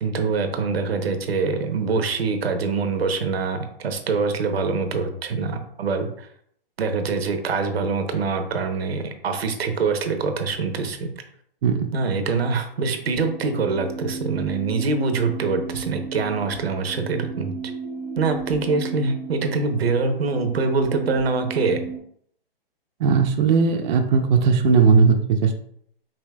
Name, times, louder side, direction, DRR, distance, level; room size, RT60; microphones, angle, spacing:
voice 1, 0.0-6.3 6.8-11.1 11.9-17.5 18.2-21.8, right 4 dB, 85° right, 6 dB, 0.8 m, -24 dB
sound 1, 13.0-22.0, right 5 dB, 15° left, 0.4 m, -35 dB
voice 2, 23.0-25.5, right 5 dB, 50° right, 4 dB, 0.5 m, -18 dB
5.0 x 2.8 x 2.2 m, 0.66 s
hypercardioid pair, 140°, 30 cm